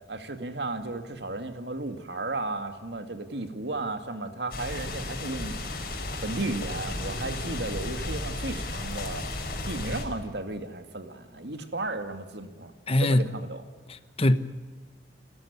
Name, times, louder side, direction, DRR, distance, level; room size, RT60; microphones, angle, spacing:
voice 1, 0.1-5.6 6.2-9.3 9.6-12.7 13.0-13.6, right 2 dB, 70° right, 2.3 m, -34 dB
sound 1, 4.5-10.0, left 2 dB, 55° left, 5.1 m, -34 dB
voice 2, 12.9-13.2 13.9-14.4, left 1 dB, 35° left, 1.1 m, -22 dB
29.5 x 14.0 x 9.7 m
head